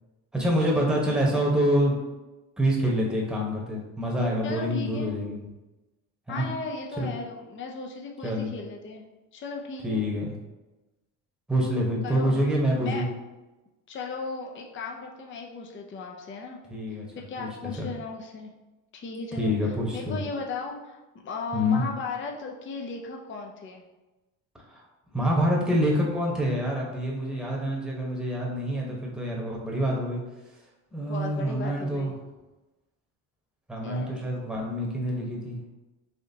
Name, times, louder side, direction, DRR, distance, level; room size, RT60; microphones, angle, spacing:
voice 1, 0.3-1.9 2.6-5.4 6.3-6.5 7.0-7.1 8.2-8.5 9.8-10.3 11.5-13.1 16.7-17.1 17.4-17.9 19.4-20.2 21.5-21.8 25.1-30.2 30.9-32.1 33.7-35.6, equal, ahead, -3 dB, 1.1 m, -26 dB
voice 2, 4.4-5.1 6.3-9.0 9.3-10.0 12.0-12.3 12.8-13.0 13.9-16.6 16.9-18.5 18.9-23.8 30.9-32.1 33.8-34.2, left 4 dB, 30° left, 1 dB, 0.6 m, -36 dB
4.2 x 2.8 x 2.8 m, 1.1 s
supercardioid pair, 75°, 38 cm